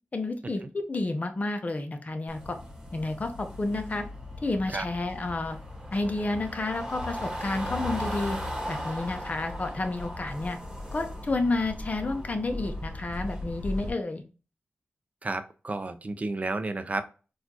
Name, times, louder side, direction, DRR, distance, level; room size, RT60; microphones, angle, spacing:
voice 1, 0.1-2.6 2.9-4.0 4.4-5.6 5.9-8.4 8.7-10.6 10.9-14.2, left 2 dB, 40° left, 6 dB, 0.7 m, -30 dB
sound 1, 2.3-13.9, left 1 dB, 15° right, 1.3 m, -37 dB
voice 2, 15.2-17.0, right 2 dB, 40° right, 10 dB, 0.5 m, -32 dB
4.2 x 2.4 x 2.8 m, 0.34 s
wide cardioid pair, 65°, 4 cm